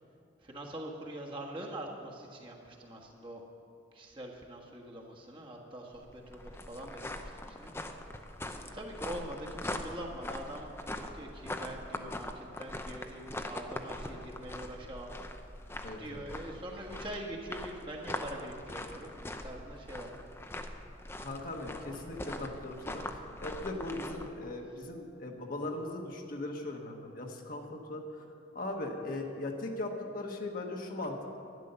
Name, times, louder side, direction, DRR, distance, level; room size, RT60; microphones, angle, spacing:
voice 1, 0.4-3.4 3.9-7.7 8.7-15.1 16.0-20.1 21.5-22.0 22.3-22.5, right 1 dB, 25° right, -2 dB, 1.5 m, -44 dB
sound 1, 5.9-24.3, left 1 dB, 15° left, 0.6 m, -42 dB
voice 2, 15.8-16.2 21.2-28.2 28.5-31.4, left 2 dB, 45° left, 1 dB, 1.3 m, -39 dB
12.0 x 10.0 x 6.8 m, 2.7 s
head